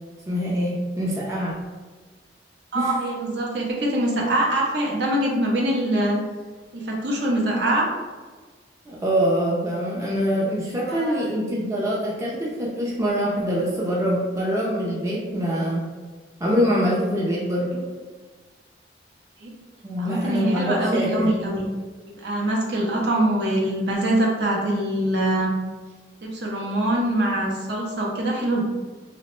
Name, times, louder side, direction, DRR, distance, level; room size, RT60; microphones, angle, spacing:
voice 1, 0.3-1.6 2.7-2.9 8.9-15.8 16.4-17.8 19.8-21.3, equal, 15° right, -5 dB, 0.4 m, -24 dB
voice 2, 2.7-6.2 6.7-7.9 10.9-11.3 19.4-19.5 20.0-21.6 22.1-25.5 26.2-28.6, right 1 dB, 65° right, -2 dB, 0.6 m, -23 dB
2.8 x 2.1 x 3.0 m, 1.4 s
head